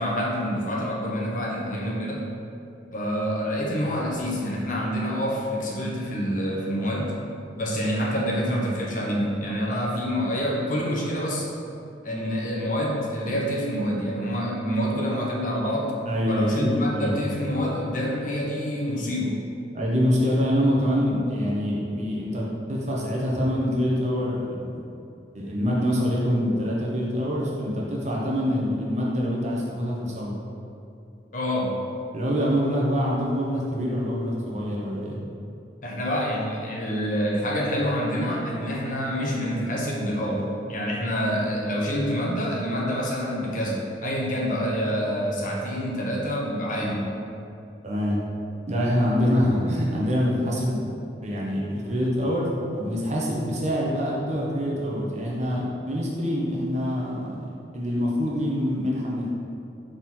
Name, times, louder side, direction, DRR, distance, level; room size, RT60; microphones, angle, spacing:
voice 1, 0.0-2.3 2.9-7.1 7.5-11.5 12.0-15.9 16.3-19.4 31.3-31.8 35.8-47.0, equal, 45° left, -2 dB, 0.9 m, -27 dB
voice 2, 16.0-17.3 17.5-17.7 19.7-24.8 25.3-30.4 32.1-35.2 46.8-46.9 47.8-48.2 48.7-50.9 51.2-59.3, equal, 40° right, -4 dB, 1.1 m, -25 dB
5.8 x 3.8 x 4.5 m, 2.6 s
head